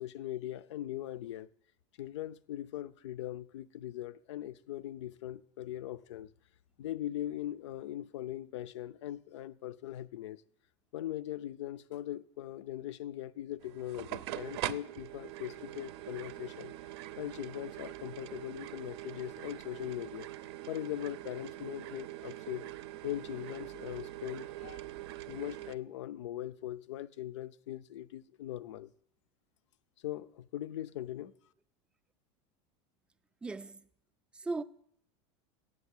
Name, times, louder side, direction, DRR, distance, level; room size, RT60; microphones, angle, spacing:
voice 1, 0.0-1.5 2.0-6.3 6.8-10.4 10.9-16.7 17.2-20.3 20.7-22.7 23.0-24.9 25.3-28.9 30.0-31.3, left 13 dB, 85° left, 0.5 m, -40 dB
sound 1, 13.6-25.8, right 14 dB, 65° right, 0.5 m, -43 dB
voice 2, 33.4-33.8 34.3-34.6, right 3 dB, 5° right, 0.3 m, -37 dB
8.3 x 7.9 x 8.8 m
supercardioid pair, 150°, 15 cm